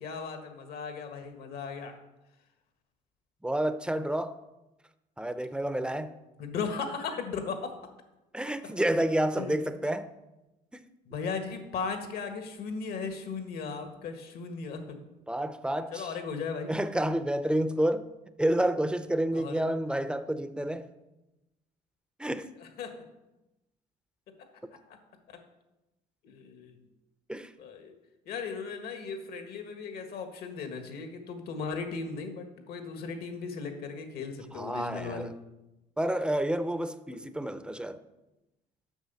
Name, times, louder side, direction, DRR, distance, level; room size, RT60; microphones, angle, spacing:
voice 1, 0.0-1.9 6.4-7.7 9.4-9.6 11.1-15.0 15.9-16.7 19.3-19.6 22.8-23.0 24.3-24.5 26.2-26.8 27.6-27.9 28.3-35.3 37.1-37.2, left 5 dB, 70° left, 1.6 m, -37 dB
voice 2, 3.4-4.4 5.2-6.2 8.3-10.1 10.7-10.8 15.3-16.2 16.7-18.1 18.4-20.9 22.2-22.5 27.3-27.5 34.5-35.3 36.0-38.0, right 1 dB, 5° right, 0.5 m, -29 dB
8.1 x 6.1 x 6.9 m
cardioid pair, 110°, 17 cm